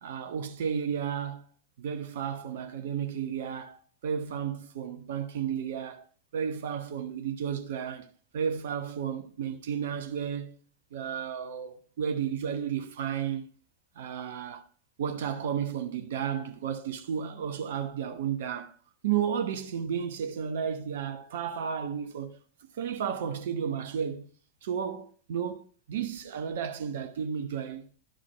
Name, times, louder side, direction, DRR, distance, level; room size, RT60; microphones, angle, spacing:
voice 1, 0.0-1.5 1.8-6.0 6.3-10.6 10.9-13.4 14.0-14.6 15.0-18.7 19.0-22.4 22.7-24.3 24.6-27.9, right 8 dB, 55° right, 0.9 m, -33 dB
11.5 x 5.0 x 3.4 m
figure-of-eight pair, 90°, 0 cm